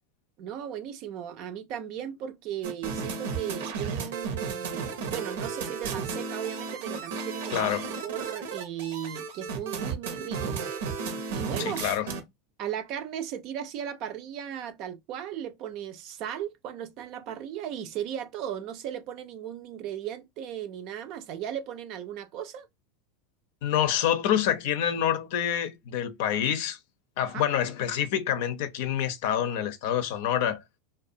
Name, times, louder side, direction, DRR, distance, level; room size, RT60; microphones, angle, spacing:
voice 1, 0.4-7.7 8.0-10.6 11.3-11.8 12.6-22.7 27.2-27.4, right 10 dB, 55° right, 0.5 m, -36 dB
sound 1, 2.6-12.2, right 5 dB, 80° right, 0.8 m, -34 dB
voice 2, 7.5-7.9 11.6-12.1 23.6-26.8 27.2-30.6, left 10 dB, 65° left, 0.5 m, -27 dB
2.5 x 2.2 x 2.6 m
hypercardioid pair, 95°, 0 cm